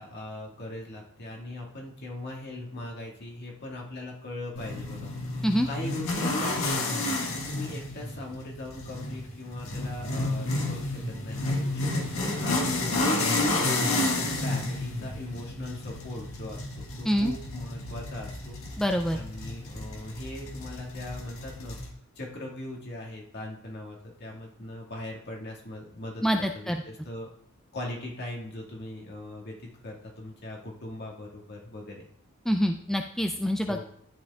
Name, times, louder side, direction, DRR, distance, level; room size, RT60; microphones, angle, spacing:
voice 1, 0.0-5.1 5.6-7.1 7.5-14.1 14.4-18.6 19.1-21.8 22.2-26.2 26.5-27.3 27.7-32.0 33.6-33.8, left 1 dB, 50° left, -1 dB, 2.1 m, -40 dB
sound 1, 4.6-21.9, left 2 dB, 75° left, 1.7 m, -31 dB
voice 2, 18.8-19.2 26.2-26.8 32.5-33.8, equal, ahead, 4 dB, 0.3 m, -26 dB
12.0 x 4.5 x 3.6 m, 0.67 s
head